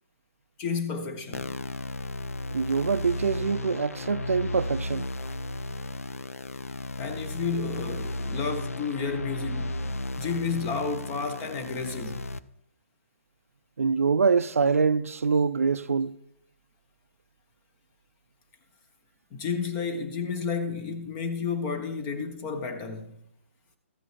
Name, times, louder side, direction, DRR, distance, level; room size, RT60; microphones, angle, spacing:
voice 1, 0.6-1.6 7.0-12.2 19.3-23.2, left 5 dB, 25° left, 1.3 m, -32 dB
sound 1, 1.3-12.4, left 2 dB, 85° left, 0.5 m, -34 dB
voice 2, 2.5-5.1 13.8-16.1, right 5 dB, 90° right, 0.4 m, -24 dB
14.0 x 8.7 x 3.4 m
hypercardioid pair, 140°, 7 cm